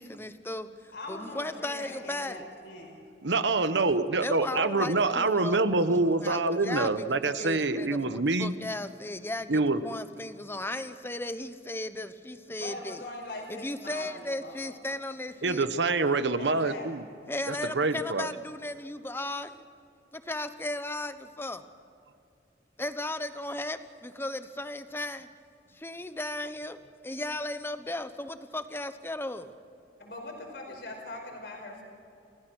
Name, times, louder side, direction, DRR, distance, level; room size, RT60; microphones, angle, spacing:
voice 1, 0.0-2.4 4.2-13.0 13.5-15.7 17.3-19.6 20.1-21.6 22.8-25.3 25.7-26.8 27.0-29.5, left 1 dB, 15° left, 10 dB, 1.0 m, -36 dB
voice 2, 0.9-3.0 12.6-14.7 16.3-17.2 30.0-31.8, left 1 dB, 70° left, 2 dB, 4.9 m, -42 dB
voice 3, 3.2-8.5 9.5-9.8 15.4-17.0 17.5-18.3, right 3 dB, 75° right, 11 dB, 1.1 m, -26 dB
29.5 x 16.0 x 6.3 m, 2.5 s
head